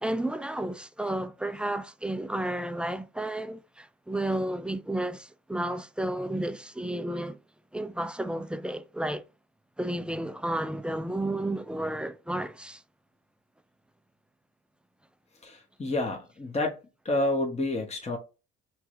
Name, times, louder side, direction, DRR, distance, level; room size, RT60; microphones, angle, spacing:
voice 1, 0.0-7.4 7.7-9.2 9.8-12.8, right 1 dB, 5° right, 0.3 m, -32 dB
voice 2, 15.4-16.8 17.0-18.2, left 2 dB, 20° left, 1.2 m, -29 dB
4.5 x 3.2 x 2.6 m
hypercardioid pair, 55°, 35 cm